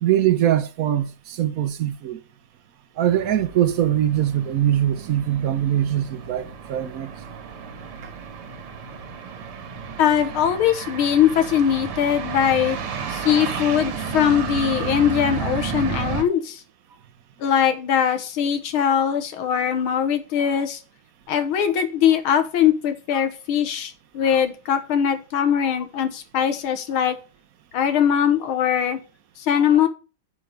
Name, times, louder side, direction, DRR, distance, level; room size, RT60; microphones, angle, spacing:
voice 1, 0.0-2.2 3.0-7.1, right 11 dB, 60° right, 1.0 m, -22 dB
sound 1, 3.1-16.2, right 6 dB, 85° right, 2.2 m, -32 dB
voice 2, 10.0-12.8 13.1-16.6 17.4-20.8 21.3-27.2 27.7-29.0 29.4-29.9, left 9 dB, 75° left, 1.9 m, -21 dB
8.5 x 4.6 x 6.6 m
omnidirectional pair, 2.4 m